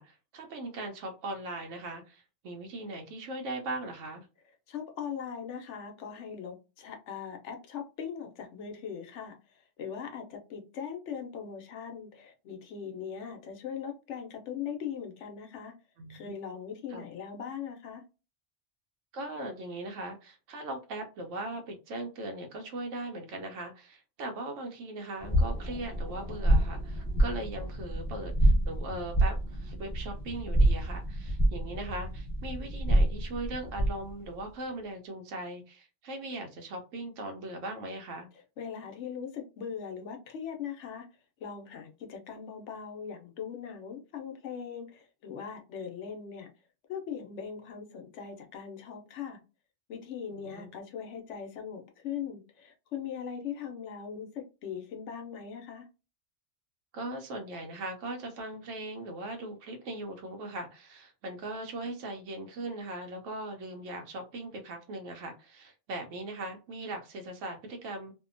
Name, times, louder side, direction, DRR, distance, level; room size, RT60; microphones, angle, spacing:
voice 1, 0.0-4.3 16.0-16.3 16.9-17.1 19.1-38.3 50.3-50.7 56.9-68.1, right 2 dB, 85° right, 0.9 m, -39 dB
voice 2, 4.7-15.7 16.1-18.0 38.6-41.1 41.4-46.5 46.9-49.4 49.9-55.9, left 7 dB, 75° left, 0.9 m, -40 dB
sound 1, 25.2-34.1, right 1 dB, 15° left, 1.1 m, -28 dB
2.7 x 2.1 x 2.4 m
omnidirectional pair, 1.2 m